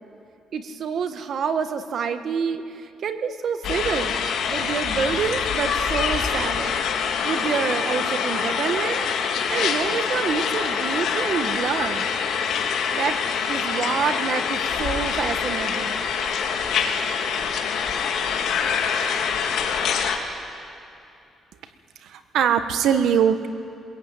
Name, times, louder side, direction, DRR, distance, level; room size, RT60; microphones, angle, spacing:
voice 1, 0.5-2.6 3.0-4.1 4.5-6.7 7.2-9.1 9.5-12.1 12.9-13.2 13.5-16.1, right 6 dB, 60° right, 8 dB, 1.6 m, -27 dB
sound 1, 3.6-20.2, left 6 dB, 75° left, 2.7 m, -25 dB
voice 2, 22.0-23.5, right 8 dB, 80° right, 9 dB, 1.3 m, -21 dB
23.0 x 21.5 x 9.1 m, 2.6 s
cardioid pair, 90°, 0 cm